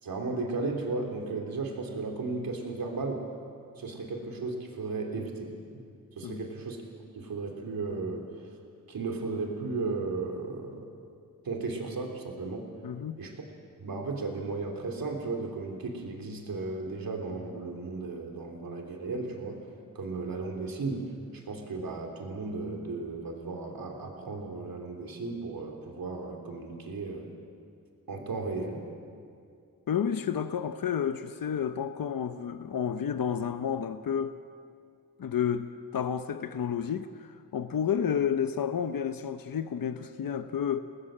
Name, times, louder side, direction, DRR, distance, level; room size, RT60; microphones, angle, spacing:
voice 1, 0.0-3.3 3.8-5.8 6.2-6.8 7.1-8.2 8.9-10.9 11.4-12.7 13.2-13.4 13.8-19.6 20.0-21.1 21.3-27.3 28.1-28.9, right 3 dB, 85° right, 1 dB, 3.5 m, -35 dB
voice 2, 12.8-13.2 29.9-34.4 35.2-40.8, left 8 dB, 75° left, 9 dB, 0.9 m, -31 dB
30.0 x 20.0 x 7.6 m, 2.4 s
wide cardioid pair, 85°, 34 cm